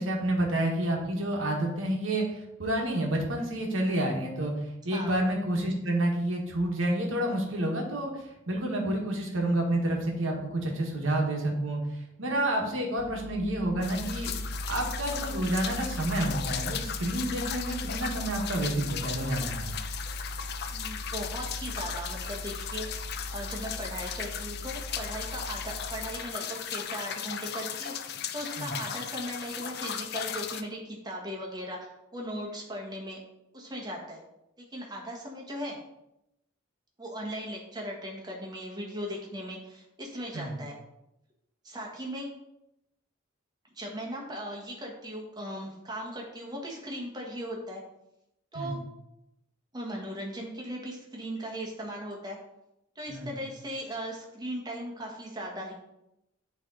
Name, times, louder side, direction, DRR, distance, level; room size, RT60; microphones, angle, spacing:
voice 1, 0.0-2.2 2.6-4.5 4.8-11.8 12.2-14.3 14.7-19.7 28.6-28.8 40.3-40.6 48.5-48.8 53.1-53.4, right 1 dB, 70° right, 0 dB, 1.4 m, -29 dB
sound 1, 13.0-26.1, equal, 85° left, 1.1 m, -39 dB
sound 2, 13.8-30.6, left 9 dB, 50° left, 0.4 m, -37 dB
voice 2, 20.7-33.2 33.5-34.2 34.6-35.8 37.0-40.7 41.6-42.3 43.7-47.8 48.5-48.8 49.7-52.4 52.9-55.7, equal, 20° right, -1 dB, 1.3 m, -38 dB
8.5 x 3.4 x 3.9 m, 0.86 s
head